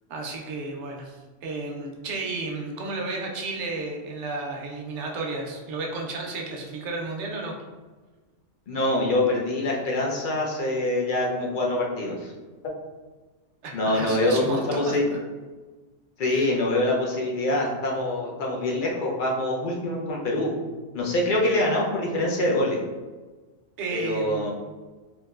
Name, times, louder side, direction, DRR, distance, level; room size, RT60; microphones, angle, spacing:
voice 1, 0.1-7.5 13.6-15.0 16.2-16.5 23.8-24.5, right 3 dB, 70° right, 0 dB, 0.9 m, -33 dB
voice 2, 8.7-12.3 13.7-15.0 16.2-20.5 20.9-22.8 23.9-24.5, left 1 dB, 55° left, -2 dB, 0.7 m, -25 dB
3.6 x 2.6 x 2.3 m, 1.3 s
omnidirectional pair, 1.3 m